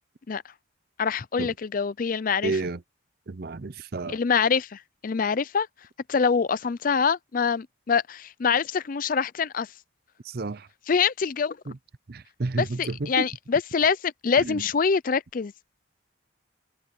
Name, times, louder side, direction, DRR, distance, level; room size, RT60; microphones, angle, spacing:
voice 1, 1.0-2.6 4.1-5.7 6.1-9.7 10.9-11.6 12.6-15.5, left 6 dB, 45° left, 0.4 m, -25 dB
voice 2, 2.4-2.8 3.3-4.2 10.2-10.7 11.7-11.8 12.1-13.3 14.4-14.6, right 3 dB, 50° right, 0.6 m, -31 dB
head